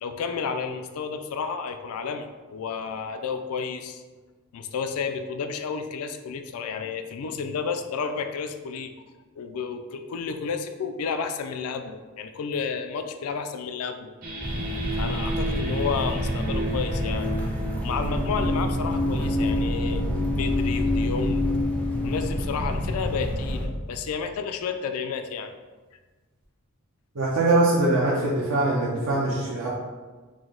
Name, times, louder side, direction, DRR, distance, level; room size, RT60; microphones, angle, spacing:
voice 1, 0.0-4.0 4.5-8.9 9.4-14.1 15.0-17.3 17.8-20.0 20.3-21.5 22.0-25.5, left 5 dB, 75° left, 7 dB, 0.3 m, -31 dB
sound 1, 14.2-23.6, left 1 dB, 40° right, 0.8 m, -29 dB
sound 2, 14.4-23.7, equal, 5° left, 0.4 m, -29 dB
voice 2, 27.1-29.7, right 2 dB, 70° right, -6 dB, 0.6 m, -22 dB
4.9 x 2.1 x 3.7 m, 1.3 s
head